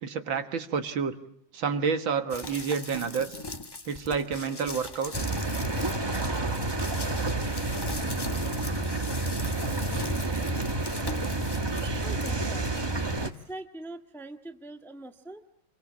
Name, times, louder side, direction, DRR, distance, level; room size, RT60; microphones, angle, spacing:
voice 1, 0.0-1.2 1.5-3.4 3.9-5.1, right 6 dB, 65° right, 8 dB, 2.1 m, -29 dB
sound 1, 2.3-12.9 13.3-13.4, left 2 dB, 20° left, 0.7 m, -40 dB
sound 2, 5.1-13.3, right 2 dB, 20° right, 0.8 m, -29 dB
voice 2, 12.0-12.7 13.2-15.4, right 2 dB, ahead, 6 dB, 1.1 m, -42 dB
28.0 x 24.5 x 8.5 m, 0.69 s
omnidirectional pair, 2.4 m